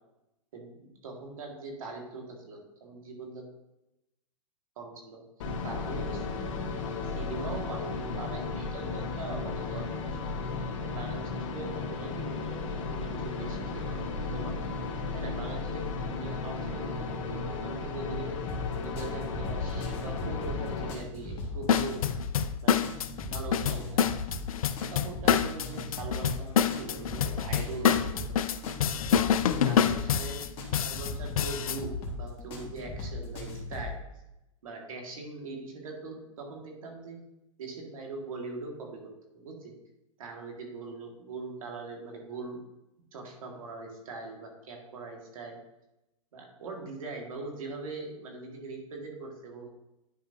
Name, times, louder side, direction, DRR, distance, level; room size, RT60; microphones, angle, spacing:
voice 1, 0.5-3.4 4.8-5.2 5.6-6.2 7.0-10.3 10.8-14.0 14.3-14.5 15.1-18.4 18.8-22.1 22.6-22.9 23.3-24.2 24.9-28.5 28.9-29.3 29.6-30.5 30.8-34.0 34.6-37.2 37.6-39.7 40.2-42.6 43.1-45.6 46.3-49.7, right 3 dB, 80° right, 1 dB, 1.9 m, -41 dB
sound 1, 5.4-20.9, left 4 dB, 65° left, 1.2 m, -34 dB
sound 2, 18.5-34.0, left 2 dB, 30° left, 1.7 m, -38 dB
sound 3, 21.7-31.8, left 8 dB, 85° left, 0.4 m, -27 dB
10.0 x 5.2 x 2.7 m, 0.91 s
hypercardioid pair, 125°, 18 cm